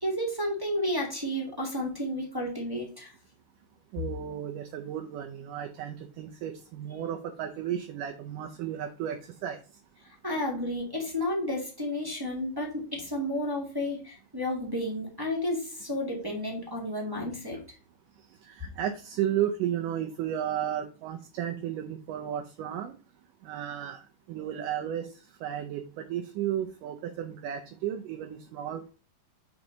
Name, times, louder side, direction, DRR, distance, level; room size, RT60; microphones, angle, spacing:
voice 1, 0.0-3.1 10.2-17.6, left 1 dB, 15° right, -1 dB, 0.9 m, -32 dB
voice 2, 3.9-9.6 18.3-22.9 23.4-28.9, right 10 dB, 75° right, 4 dB, 2.0 m, -34 dB
7.2 x 5.2 x 3.9 m, 0.36 s
omnidirectional pair, 4.4 m